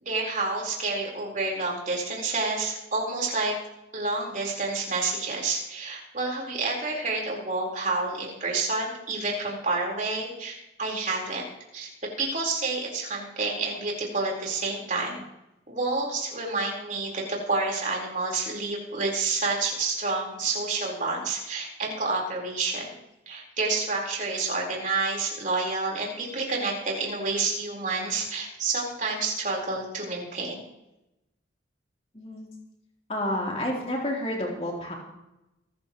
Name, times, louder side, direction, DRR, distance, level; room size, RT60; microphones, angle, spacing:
voice 1, 0.0-3.6 3.9-11.9 12.2-15.2 15.7-22.9 23.3-30.6, right 3 dB, 40° right, -2 dB, 4.5 m, -29 dB
voice 2, 32.1-32.5 33.1-34.9, left 1 dB, 30° left, -2 dB, 3.8 m, -30 dB
24.0 x 13.0 x 3.2 m, 0.90 s
head